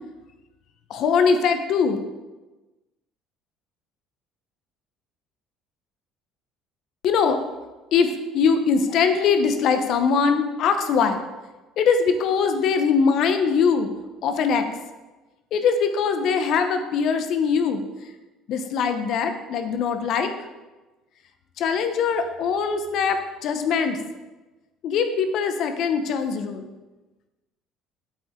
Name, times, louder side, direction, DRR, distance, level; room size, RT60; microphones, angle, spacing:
voice 1, 0.9-2.0 7.0-7.4 7.9-11.2 11.8-13.9 14.2-14.6 15.5-17.8 18.5-20.3 21.6-24.0 24.8-26.7, left 6 dB, 65° left, 8 dB, 1.0 m, -22 dB
8.9 x 7.8 x 3.8 m, 1.1 s
supercardioid pair, 85°, 0 cm